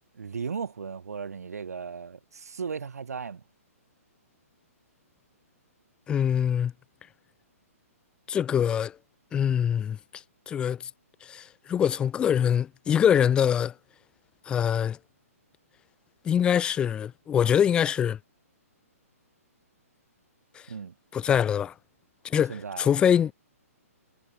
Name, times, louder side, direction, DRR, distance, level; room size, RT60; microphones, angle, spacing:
voice 1, 0.1-3.4 20.7-20.9 22.4-22.9, right 6 dB, 85° right, 1.1 m, -36 dB
voice 2, 6.1-6.7 8.3-9.0 9.3-10.8 11.2-13.7 14.5-15.0 16.2-18.2 20.5-20.7 21.1-21.7 22.2-23.3, left 8 dB, 10° left, 0.4 m, -24 dB
hypercardioid pair, 145°, 8 cm